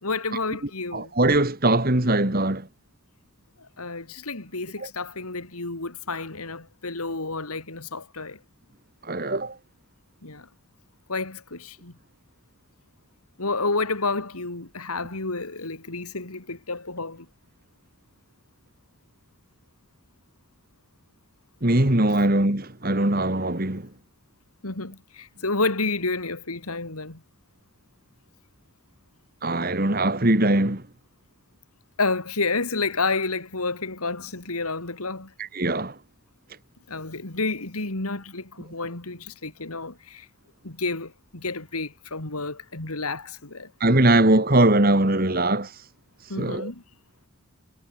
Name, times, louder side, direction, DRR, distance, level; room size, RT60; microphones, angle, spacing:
voice 1, 0.0-1.1 3.8-8.4 10.2-10.5 11.1-11.9 13.4-17.3 24.6-27.2 32.0-35.3 36.9-40.3 40.6-43.7 46.3-46.8, left 3 dB, 90° left, 3.3 m, -30 dB
voice 2, 0.9-2.7 4.8-4.9 9.1-9.6 21.6-23.9 29.4-30.8 35.4-35.9 43.8-45.7 46.4-46.7, right 1 dB, 40° right, 2.1 m, -21 dB
head